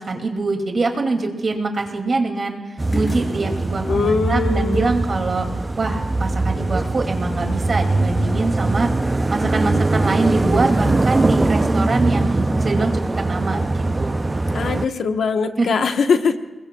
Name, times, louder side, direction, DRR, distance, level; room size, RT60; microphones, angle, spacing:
voice 1, 0.0-2.6 2.9-5.5 5.8-8.9 9.3-13.6 14.0-14.2 15.6-15.8, right 3 dB, 45° right, 3 dB, 2.4 m, -23 dB
sound 1, 1.8-2.0 2.9-3.4 4.7-5.0 10.0-10.3 11.9-12.2, equal, 30° left, 7.0 m, -35 dB
sound 2, 2.8-14.9, right 2 dB, 20° right, 0.5 m, -21 dB
voice 2, 3.9-4.9 14.5-16.4, left 5 dB, 75° left, 6 dB, 1.1 m, -21 dB
29.5 x 21.5 x 2.3 m, 1.2 s
wide cardioid pair, 115°, 0 cm